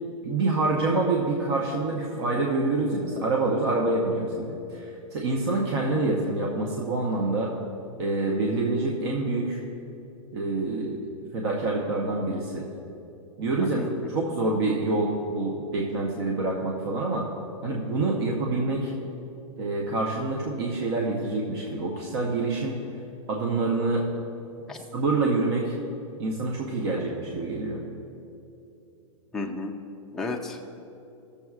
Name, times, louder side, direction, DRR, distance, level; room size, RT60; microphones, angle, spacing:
voice 1, 0.2-7.5 8.0-9.6 10.3-11.1 11.3-12.7 13.4-13.8 14.1-17.3 17.6-18.9 19.6-22.8 23.3-24.0 24.9-25.7 26.2-27.8, right 2 dB, 50° right, -1 dB, 0.8 m, -26 dB
voice 2, 13.6-14.3 24.7-24.8 29.3-29.7 30.1-30.6, left 3 dB, 5° left, 0 dB, 0.3 m, -33 dB
15.5 x 6.9 x 2.4 m, 2.8 s
hypercardioid pair, 155°, 17 cm